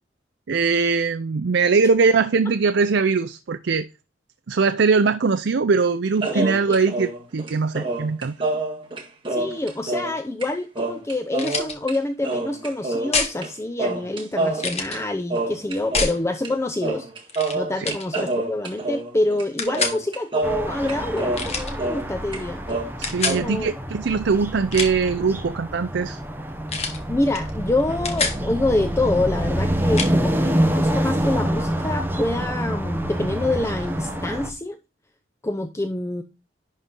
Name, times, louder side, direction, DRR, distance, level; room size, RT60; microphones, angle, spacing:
voice 1, 0.5-3.9 4.5-8.3 17.8-17.9 23.0-26.2, right 4 dB, 65° right, 0.5 m, -21 dB
sound 1, 6.2-10.2 10.4-10.5 10.8-12.0 12.2-13.5 13.8-16.2 16.4-16.6 16.8-22.1 22.3-23.4, right 2 dB, 25° right, 1.7 m, -27 dB
voice 2, 6.3-6.8 9.3-17.1 17.5-22.6 23.3-23.7 27.1-34.8 35.4-36.2, left 2 dB, 15° left, 0.5 m, -26 dB
sound 2, 11.4-11.8 13.1-13.4 14.6-15.0 15.9-16.2 17.3-17.6 17.8-18.1 19.6-20.0 21.3-21.7 23.0-23.4 24.6-25.1 26.7-27.0 27.3-27.5 27.8-28.4 30.0-30.1, left 4 dB, 35° left, 1.4 m, -26 dB
sound 3, 20.4-34.5, equal, 10° right, 0.8 m, -26 dB
11.0 x 4.1 x 3.7 m
head